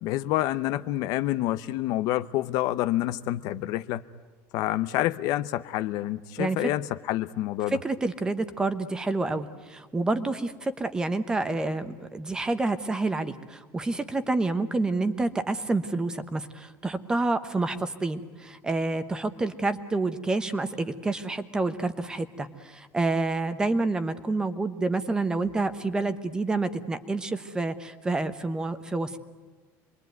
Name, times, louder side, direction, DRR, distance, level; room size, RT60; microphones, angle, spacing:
voice 1, 0.0-4.0 4.5-7.8, left 15 dB, 55° left, 14 dB, 0.8 m, -28 dB
voice 2, 7.8-29.2, right 3 dB, 10° right, 12 dB, 1.1 m, -28 dB
27.0 x 22.5 x 9.3 m, 1.4 s
cardioid pair, 175°, 8 cm